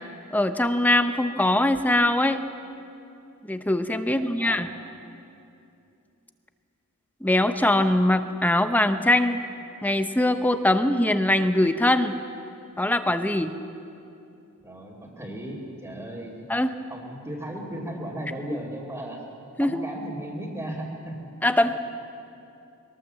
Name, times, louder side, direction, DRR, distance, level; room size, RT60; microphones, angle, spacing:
voice 1, 0.3-2.4 3.5-4.7 7.2-9.4 9.8-12.1 12.8-13.5 16.5-16.7 19.6-19.8 21.4-21.7, left 1 dB, 5° left, 9 dB, 0.7 m, -22 dB
voice 2, 4.0-4.7 14.6-16.5 16.9-19.3 19.6-21.3, right 1 dB, 15° right, -8 dB, 2.5 m, -36 dB
22.0 x 18.5 x 7.6 m, 2.6 s
head